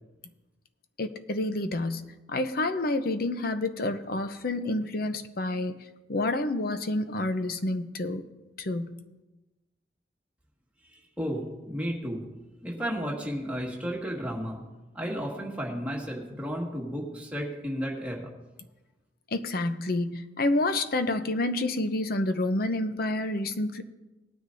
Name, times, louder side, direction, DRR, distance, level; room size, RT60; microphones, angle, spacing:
voice 1, 1.0-5.8 6.1-8.2 8.6-9.0 19.3-23.8, left 2 dB, 50° left, 9 dB, 0.7 m, -29 dB
voice 2, 10.9-12.2 12.6-14.6 14.9-18.3, equal, 10° right, -3 dB, 1.9 m, -33 dB
19.5 x 9.4 x 2.7 m, 1.1 s
head